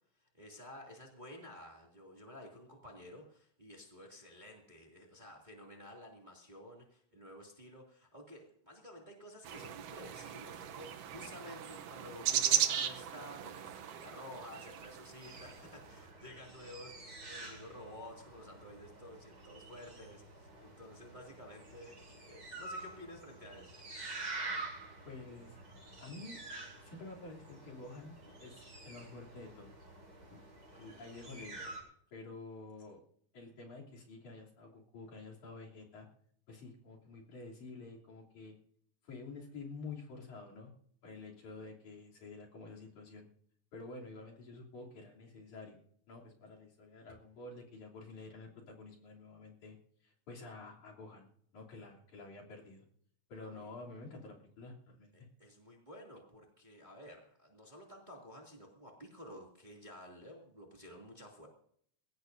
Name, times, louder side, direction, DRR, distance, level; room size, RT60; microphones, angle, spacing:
voice 1, 0.1-23.8 53.4-53.7 55.1-61.5, left 1 dB, 15° right, 0 dB, 2.3 m, -52 dB
sound 1, 9.4-15.7, right 9 dB, 70° right, 1.6 m, -36 dB
sound 2, 15.2-31.8, right 2 dB, 35° right, 5.0 m, -48 dB
voice 2, 25.1-25.6 26.0-26.4 26.8-29.8 30.3-30.4 30.7-31.7 32.1-33.0 33.3-36.1 36.5-38.6 39.0-40.7 41.0-43.3 43.7-45.8 46.1-49.8 50.0-51.3 51.5-52.8 53.3-55.1, left 3 dB, 65° left, -3 dB, 4.6 m, -49 dB
22.0 x 17.0 x 2.7 m, 0.63 s
omnidirectional pair, 3.7 m